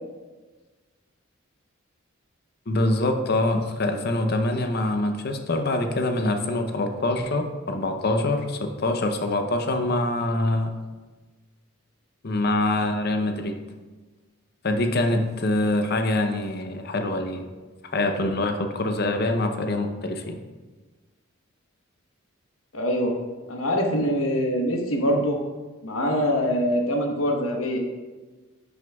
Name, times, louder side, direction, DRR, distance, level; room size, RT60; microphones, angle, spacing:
voice 1, 2.7-10.7 12.2-13.6 14.6-17.4 17.8-20.4, left 2 dB, 50° left, 5 dB, 0.7 m, -25 dB
voice 2, 22.7-23.1 23.5-25.4 25.8-27.8, equal, 85° left, 2 dB, 1.1 m, -24 dB
10.5 x 6.2 x 2.3 m, 1.3 s
head